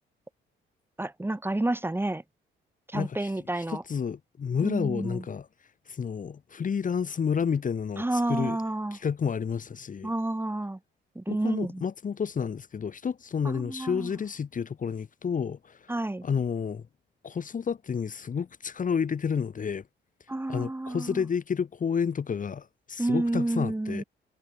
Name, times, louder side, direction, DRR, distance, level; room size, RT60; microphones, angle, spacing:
voice 1, 1.0-2.2 2.9-3.8 4.6-5.2 8.0-9.0 10.0-10.8 11.1-11.8 13.4-14.1 15.9-16.2 20.3-21.2 23.0-24.0, right 1 dB, 10° right, 2.9 m, -30 dB
voice 2, 2.9-3.3 3.7-5.5 5.9-8.6 8.9-10.1 11.3-15.9 16.2-16.9 17.2-19.8 20.5-24.0, left 6 dB, 40° left, 1.8 m, -30 dB
cardioid pair, 90°, 20 cm